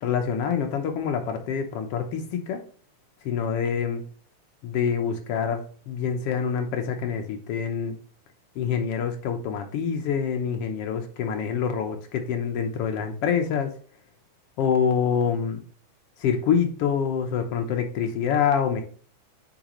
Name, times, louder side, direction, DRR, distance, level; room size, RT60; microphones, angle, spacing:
voice 1, 0.0-2.6 3.2-4.0 4.6-8.0 8.5-13.7 14.6-15.6 16.2-18.8, left 7 dB, 80° left, 4 dB, 1.3 m, -26 dB
8.9 x 4.6 x 3.0 m, 0.44 s
omnidirectional pair, 3.9 m